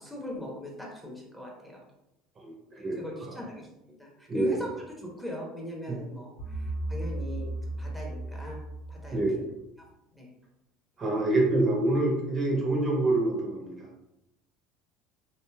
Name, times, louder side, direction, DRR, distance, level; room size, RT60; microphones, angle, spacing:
voice 1, 0.0-1.8 2.9-7.5 7.8-8.6 8.9-9.5 9.8-9.9 10.1-10.3 11.0-11.3, left 1 dB, 5° left, -2 dB, 0.7 m, -40 dB
voice 2, 2.4-3.0 4.3-4.6 5.9-6.0 9.1-9.4 11.0-13.8, right 2 dB, 30° right, -1 dB, 0.7 m, -26 dB
sound 1, 6.4-9.5, right 1 dB, 80° left, 1.0 m, -35 dB
3.2 x 2.4 x 2.2 m, 0.86 s
supercardioid pair, 105°, 0 cm